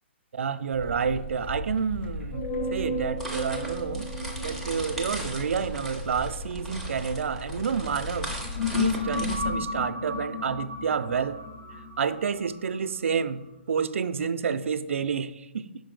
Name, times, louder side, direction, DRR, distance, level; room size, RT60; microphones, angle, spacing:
voice 1, 0.3-2.4 2.7-4.1 4.4-8.3 8.7-11.4 12.0-13.4 13.7-15.7, right 6 dB, 85° right, 0.4 m, -29 dB
sound 1, 0.7-9.5, left 1 dB, 60° left, 0.9 m, -38 dB
sound 2, 2.3-7.6 8.2-13.2, left 3 dB, 40° left, 1.5 m, -34 dB
sound 3, 3.2-9.4, right 1 dB, ahead, 0.6 m, -39 dB
5.3 x 5.0 x 3.8 m
hypercardioid pair, 165°, 7 cm